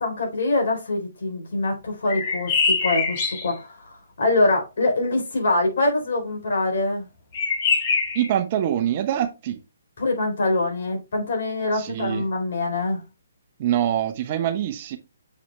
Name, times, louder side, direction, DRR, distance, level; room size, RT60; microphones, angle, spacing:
voice 1, 0.0-7.1 10.0-13.0, left 2 dB, 65° left, 3.9 m, -24 dB
sound 1, 2.1-3.5 7.3-8.3, left 4 dB, 35° left, 2.1 m, -23 dB
voice 2, 8.1-9.6 11.7-12.2 13.6-15.0, right 10 dB, 40° right, 1.0 m, -24 dB
7.1 x 4.9 x 3.4 m
hypercardioid pair, 145°, 0 cm